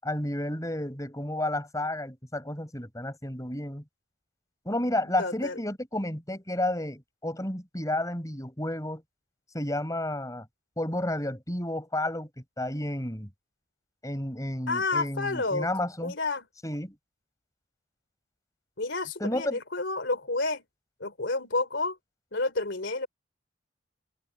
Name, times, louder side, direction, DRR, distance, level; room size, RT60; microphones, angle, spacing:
voice 1, 0.0-3.8 4.7-9.0 9.5-10.5 10.8-13.3 14.0-16.1 16.6-17.0 19.2-19.6, left 1 dB, 15° left, 5.7 m, -31 dB
voice 2, 5.2-5.6 14.7-15.7 16.0-16.5 18.8-20.6 21.0-22.0 22.3-23.1, left 3 dB, 70° left, 3.3 m, -30 dB
head